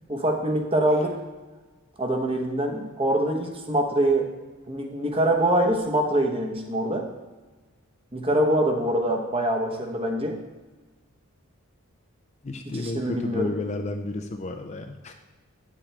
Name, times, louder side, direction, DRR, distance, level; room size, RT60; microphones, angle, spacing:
voice 1, 0.1-1.2 2.0-4.3 4.7-7.1 8.1-10.4 12.8-13.5, right 1 dB, 25° right, 2 dB, 0.9 m, -24 dB
voice 2, 12.4-15.1, left 2 dB, 30° left, 5 dB, 0.4 m, -32 dB
8.7 x 7.3 x 3.3 m, 1.2 s
head